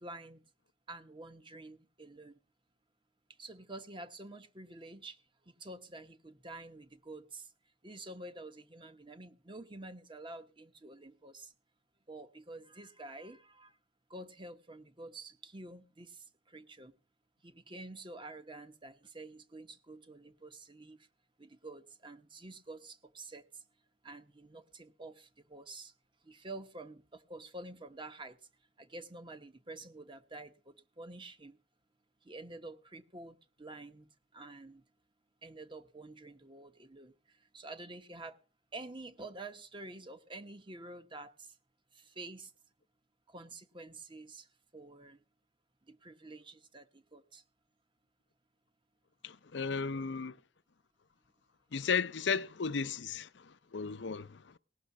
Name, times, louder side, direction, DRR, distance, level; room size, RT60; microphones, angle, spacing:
voice 1, 0.0-0.4 0.9-2.4 3.4-5.2 5.5-7.5 7.8-11.5 12.1-13.7 14.1-16.9 17.4-21.0 21.4-23.4 24.0-25.9 26.2-28.4 28.8-31.6 32.2-34.8 35.4-37.1 37.5-38.4 38.7-41.5 41.9-42.5 43.3-44.5 44.7-45.2 45.9-47.4, right 2 dB, 25° right, 1.1 m, -48 dB
voice 2, 49.2-50.4 51.7-54.6, left 5 dB, 80° left, 0.6 m, -35 dB
18.0 x 6.4 x 7.0 m
head